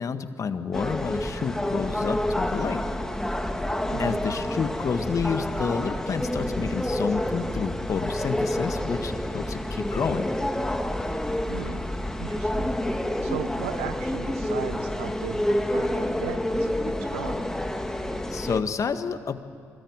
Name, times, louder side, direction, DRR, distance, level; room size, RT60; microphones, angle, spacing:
voice 1, 0.0-2.8 4.0-10.3 18.3-19.4, left 6 dB, 50° left, 9 dB, 1.7 m, -29 dB
sound 1, 0.7-18.6, left 1 dB, 5° left, 2.3 m, -28 dB
voice 2, 11.5-11.9 12.2-12.7 13.2-17.5, right 10 dB, 85° right, 11 dB, 1.2 m, -37 dB
25.5 x 21.0 x 9.7 m, 2.3 s
hypercardioid pair, 45°, 7 cm